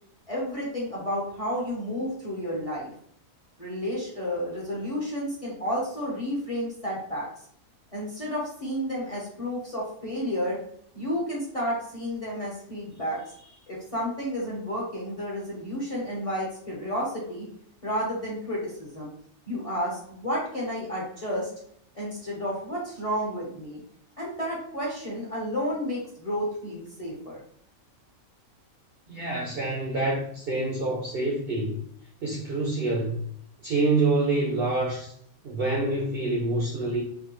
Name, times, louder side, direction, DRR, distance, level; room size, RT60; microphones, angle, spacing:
voice 1, 0.3-2.9 3.6-7.3 7.9-10.6 10.9-17.5 17.8-19.1 19.5-21.5 21.9-23.8 24.2-27.4, equal, 30° left, -5 dB, 0.7 m, -31 dB
voice 2, 29.1-31.8 32.2-33.2 33.6-35.1 35.4-37.0, right 2 dB, 60° right, -3 dB, 0.6 m, -26 dB
3.4 x 2.2 x 2.9 m, 0.66 s
omnidirectional pair, 1.5 m